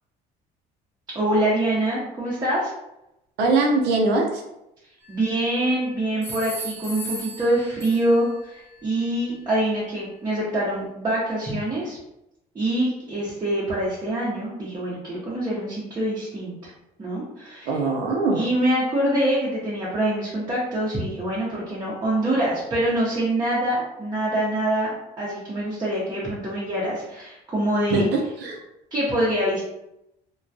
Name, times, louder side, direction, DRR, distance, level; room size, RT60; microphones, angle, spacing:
voice 1, 1.1-2.7 5.1-12.0 12.5-16.7 17.0-17.7 18.3-28.1 28.9-29.6, right 1 dB, 25° right, -7 dB, 0.7 m, -25 dB
voice 2, 3.4-4.4 17.7-18.5 27.9-28.6, right 3 dB, 85° right, 1 dB, 0.6 m, -22 dB
sound 1, 5.0-5.7 6.2-8.4, right 2 dB, 15° left, 0.8 m, -37 dB
2.2 x 2.2 x 2.6 m, 0.87 s
cardioid pair, 110°, 17 cm